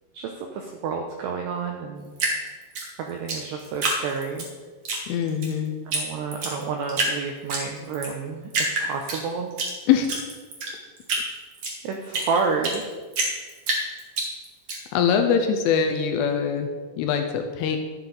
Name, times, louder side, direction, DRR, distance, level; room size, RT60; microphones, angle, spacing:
voice 1, 0.1-2.1 3.0-4.5 5.9-9.5 11.8-12.8, right 5 dB, 85° right, 2 dB, 2.4 m, -30 dB
Drip, 2.2-4.5 4.8-5.5 5.9-6.0 6.3-7.1 7.5-8.1 8.5-9.7 10.0-12.8 13.1-14.8, right 2 dB, 55° right, 1.6 m, -26 dB
voice 2, 5.1-5.8 9.9-10.2 14.9-16.7 17.0-17.8, left 7 dB, 80° left, 6 dB, 3.1 m, -23 dB
11.5 x 9.9 x 3.9 m, 1.4 s
omnidirectional pair, 5.9 m